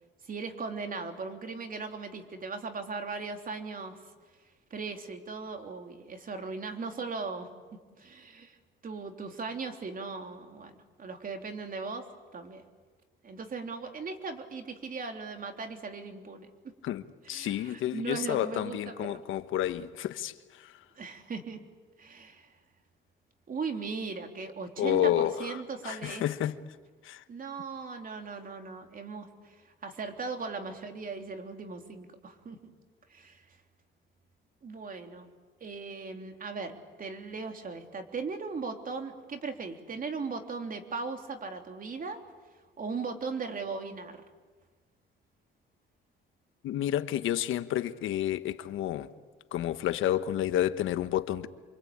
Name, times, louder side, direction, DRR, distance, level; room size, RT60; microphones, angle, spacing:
voice 1, 0.2-4.0 4.7-7.5 8.0-8.6 8.8-12.0 12.3-12.6 13.2-16.5 17.2-19.2 21.0-21.6 22.0-22.5 23.5-26.3 27.3-29.6 29.8-32.7 33.1-33.4 34.6-35.3 35.6-42.2 42.8-44.2, right 4 dB, 45° right, 3.4 m, -38 dB
voice 2, 17.3-20.7 24.8-25.6 25.8-26.5 27.0-27.2 46.6-49.1 49.5-51.5, left 11 dB, 85° left, 1.2 m, -30 dB
28.0 x 24.5 x 8.7 m
cardioid pair, 90°, 20 cm